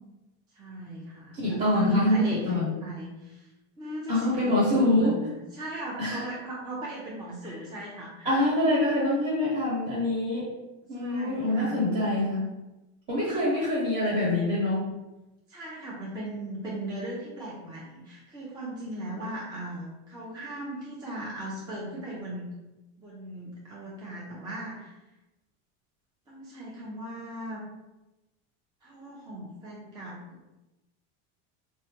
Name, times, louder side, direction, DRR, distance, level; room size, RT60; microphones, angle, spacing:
voice 1, 0.5-3.5 3.8-5.1 5.5-8.5 10.9-11.8 13.5-13.6 15.5-22.5 23.0-25.0 26.3-27.6 28.8-30.4, right 1 dB, 10° right, -6 dB, 0.4 m, -38 dB
voice 2, 1.4-2.7 4.1-5.2 6.0-6.2 7.4-7.5 8.2-10.5 10.9-12.5 13.1-14.9, left 1 dB, 30° right, -7 dB, 1.1 m, -25 dB
3.3 x 2.1 x 2.8 m, 1.0 s
supercardioid pair, 145°, 34 cm